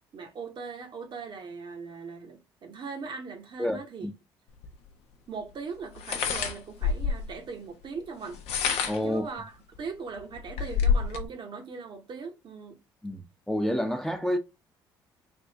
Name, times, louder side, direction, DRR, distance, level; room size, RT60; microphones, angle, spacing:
voice 1, 0.1-4.1 5.3-8.4 9.0-12.8, right 5 dB, 45° right, 0.9 m, -40 dB
voice 2, 3.6-4.1 8.8-9.2 13.0-14.4, equal, 5° left, 0.7 m, -29 dB
sound 1, 4.6-4.7 6.0-7.3 8.3-9.1 9.8-9.9 10.2-11.3, left 6 dB, 70° left, 0.6 m, -27 dB
3.4 x 2.6 x 2.8 m
hypercardioid pair, 50°, 11 cm